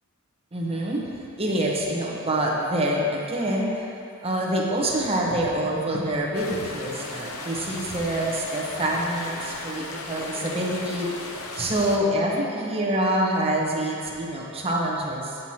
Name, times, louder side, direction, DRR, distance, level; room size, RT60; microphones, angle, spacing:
voice 1, 0.5-1.0 1.4-3.8 4.2-11.1 11.5-15.4, right 1 dB, 25° right, -3 dB, 1.0 m, -26 dB
sound 1, 6.3-12.0, left 2 dB, 75° left, 0.7 m, -36 dB
9.0 x 7.9 x 2.9 m, 2.6 s
head